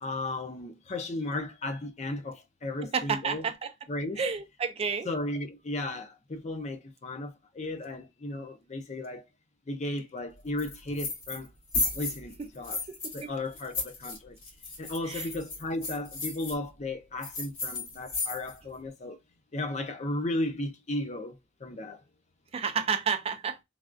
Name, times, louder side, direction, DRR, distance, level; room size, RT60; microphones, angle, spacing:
voice 1, 0.0-3.5 3.9-4.2 5.0-9.3 9.7-11.5 11.8-12.8 13.1-14.4 14.8-19.2 19.5-22.0, left 2 dB, 35° left, 0.5 m, -35 dB
voice 2, 2.8-3.7 4.2-5.1 13.2-13.3 15.1-15.2 22.5-23.6, right 6 dB, 30° right, 0.3 m, -30 dB
sound 1, 10.6-11.5 11.7-13.2 13.5-16.5 17.2-18.6, left 3 dB, 80° left, 1.7 m, -34 dB
3.3 x 2.3 x 2.4 m
head